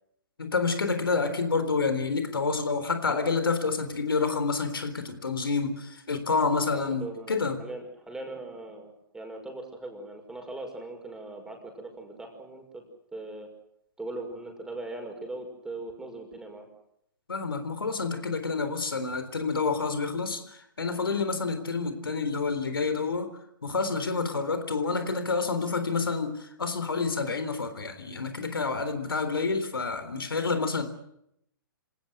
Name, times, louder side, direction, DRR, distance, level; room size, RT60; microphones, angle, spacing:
voice 1, 0.4-7.6 17.3-23.3 23.6-30.9, left 4 dB, 80° left, 9 dB, 3.8 m, -28 dB
voice 2, 6.7-12.8 13.1-13.5 14.0-16.7, right 2 dB, 5° right, 3 dB, 5.8 m, -40 dB
27.0 x 18.5 x 8.0 m, 0.75 s
figure-of-eight pair, 125°, 12 cm